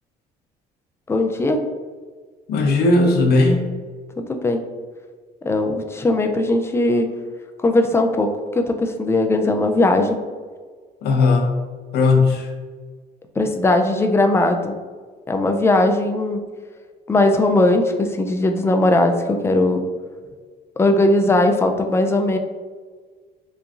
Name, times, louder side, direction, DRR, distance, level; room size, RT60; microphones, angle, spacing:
voice 1, 1.1-1.6 4.2-4.6 5.4-7.1 7.6-10.2 13.4-14.7 15.3-16.4 17.1-19.8 20.8-22.4, left 2 dB, 15° left, 5 dB, 0.3 m, -19 dB
voice 2, 2.5-3.7 11.0-11.6 11.9-12.5, left 3 dB, 70° left, 2 dB, 0.7 m, -17 dB
3.4 x 3.0 x 2.4 m, 1.5 s
cardioid pair, 110°, 17 cm